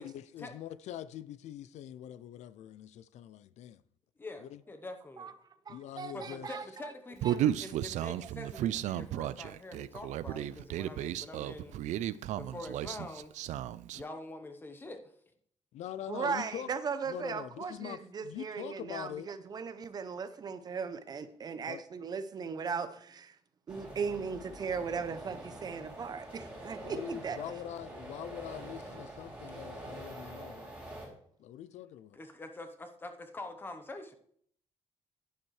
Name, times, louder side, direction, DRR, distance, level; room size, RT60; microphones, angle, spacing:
voice 1, 0.0-3.8 4.4-4.6 5.7-6.5 15.7-16.7 17.1-19.3 21.7-21.8 26.8-30.7 31.4-32.2, left 11 dB, 70° left, 0.4 m, -43 dB
voice 2, 4.2-5.3 6.1-11.8 12.4-13.4 13.9-15.0 32.1-34.1, left 2 dB, 15° left, 0.9 m, -45 dB
voice 3, 5.7-6.9 7.2-7.4 8.4-8.5 16.1-23.4 23.7-27.4, right 5 dB, 35° right, 0.6 m, -38 dB
Human voice, 7.2-14.0, right 12 dB, 80° right, 0.4 m, -34 dB
sound 1, 23.7-31.1, right 1 dB, 10° right, 3.0 m, -46 dB
11.0 x 10.0 x 3.2 m
cardioid pair, 165°, 12 cm